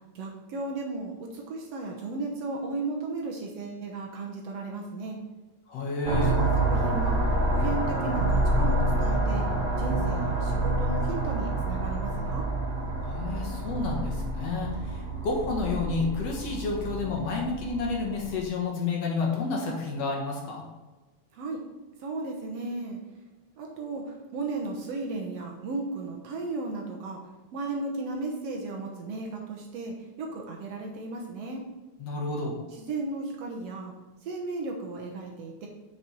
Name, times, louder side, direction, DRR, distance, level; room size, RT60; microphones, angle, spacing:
voice 1, 0.2-5.2 6.0-7.2 7.5-9.4 9.8-12.5 21.3-21.6 22.0-23.0 23.6-24.0 24.3-27.2 27.5-31.6 32.7-33.9 34.2-35.7, right 3 dB, 65° right, 0 dB, 1.9 m, -35 dB
voice 2, 5.7-6.4 13.0-20.6 32.0-32.6, left 3 dB, 60° left, -1 dB, 2.4 m, -30 dB
sound 1, 6.0-18.4, right 2 dB, 45° right, 1.3 m, -28 dB
7.0 x 6.5 x 4.5 m, 1.2 s
omnidirectional pair, 3.4 m